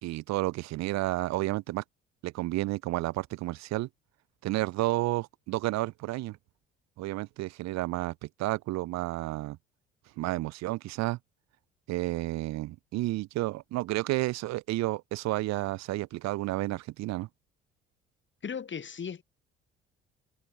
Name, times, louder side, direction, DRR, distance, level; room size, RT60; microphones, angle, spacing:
voice 1, 0.0-1.8 2.2-3.9 4.4-6.4 7.0-9.6 10.2-11.2 11.9-17.3, right 18 dB, 60° right, 2.6 m, -31 dB
voice 2, 18.4-19.2, left 7 dB, 40° left, 6.8 m, -36 dB
figure-of-eight pair, 50°, 30 cm